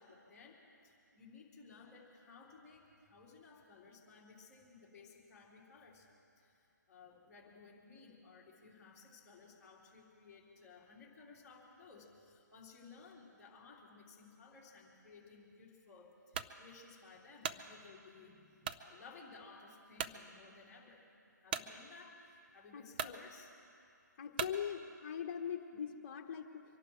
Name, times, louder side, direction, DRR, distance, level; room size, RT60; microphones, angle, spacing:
voice 1, 0.0-6.1 6.4-18.4 18.8-21.1 21.4-23.5, left 4 dB, 10° left, -7 dB, 3.3 m, -58 dB
sound 1, 16.3-16.6 17.1-17.6 18.6-18.9 19.4-19.5 20.0-20.2 21.5-21.7 22.5-22.6 22.9-23.2 24.3-24.6, right 7 dB, 30° right, 0.6 m, -39 dB
voice 2, 22.7-23.2 24.2-26.6, left 8 dB, 35° left, 3 dB, 1.5 m, -42 dB
25.0 x 11.5 x 4.7 m, 2.5 s
hypercardioid pair, 155°, 10 cm